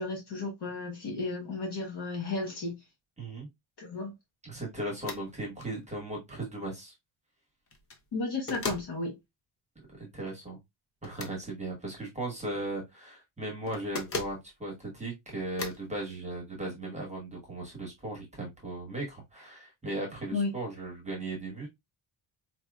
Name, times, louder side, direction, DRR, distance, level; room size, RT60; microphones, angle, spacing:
voice 1, 0.0-2.8 3.8-4.1 8.1-9.2 20.3-20.5, left 3 dB, 55° left, 1.2 m, -33 dB
voice 2, 3.2-3.5 4.4-6.9 9.9-10.6 11.0-21.7, right 2 dB, 15° right, 1.2 m, -37 dB
sound 1, 5.0-5.3 5.6-5.7 7.7-8.0 8.5-8.9 11.0-11.4 13.7-14.4 15.6-15.9, left 4 dB, 30° left, 0.6 m, -37 dB
4.4 x 2.9 x 2.3 m
wide cardioid pair, 175°, 49 cm